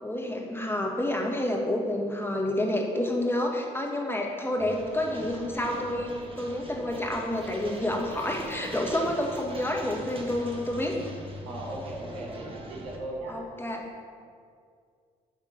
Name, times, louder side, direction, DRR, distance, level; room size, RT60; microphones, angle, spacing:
voice 1, 0.0-6.1 6.4-10.9 13.3-13.8, left 1 dB, 10° left, 0 dB, 1.3 m, -29 dB
sound 1, 4.6-13.0, right 1 dB, 30° right, 1.4 m, -41 dB
voice 2, 11.4-13.4, right 2 dB, 85° right, -2 dB, 1.3 m, -38 dB
8.5 x 3.6 x 5.6 m, 2.2 s
hypercardioid pair, 50°, 18 cm